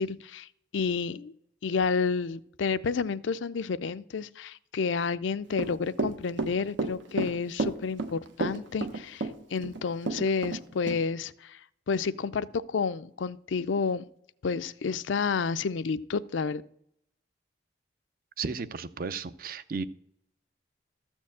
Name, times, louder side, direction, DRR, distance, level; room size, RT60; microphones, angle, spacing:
voice 1, 0.0-1.3 1.6-11.6 11.9-14.1 14.4-16.6, left 5 dB, 85° left, 14 dB, 0.4 m, -30 dB
Run / Walk footsteps, 5.5-10.6 10.9-11.0, right 2 dB, 85° right, 1.0 m, -31 dB
voice 2, 18.4-19.8, right 4 dB, 50° right, 14 dB, 0.5 m, -34 dB
13.5 x 4.5 x 7.3 m, 0.73 s
head